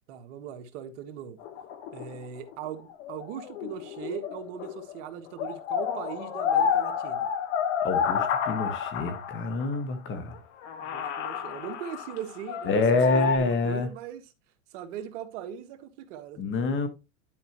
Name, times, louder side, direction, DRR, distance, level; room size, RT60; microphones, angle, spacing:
voice 1, 0.1-1.4 1.9-7.3 10.8-14.3 14.7-16.4, right 8 dB, 60° right, 1.5 m, -39 dB
sound 1, 1.4-5.0 5.3-9.8 10.3-10.4 10.6-13.4, left 7 dB, 60° left, 1.7 m, -30 dB
voice 2, 7.8-10.3 12.6-13.9 16.4-16.9, left 3 dB, 30° left, 1.5 m, -26 dB
11.0 x 5.2 x 3.0 m
supercardioid pair, 130°, 40 cm